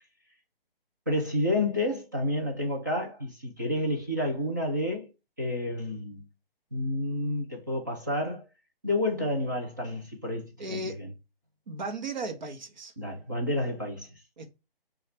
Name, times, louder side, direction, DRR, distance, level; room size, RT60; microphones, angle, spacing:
voice 1, 1.1-5.1 5.4-6.3 6.7-8.5 8.8-11.1 13.0-14.1, left 1 dB, 20° right, 0.5 m, -30 dB
voice 2, 10.6-11.0 11.7-12.9 14.4-14.5, right 2 dB, 50° right, 1.0 m, -35 dB
5.5 x 2.5 x 3.2 m
hypercardioid pair, 170°, 29 cm